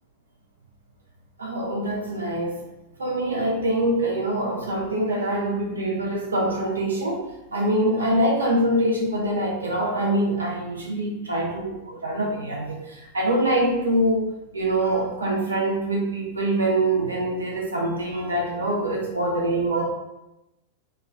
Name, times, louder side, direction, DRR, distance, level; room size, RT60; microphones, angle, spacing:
voice 1, 1.4-2.6 3.0-14.3 14.5-19.8, right 1 dB, 75° right, -2 dB, 0.4 m, -24 dB
2.3 x 2.2 x 2.5 m, 0.94 s
figure-of-eight pair, 90°, 0 cm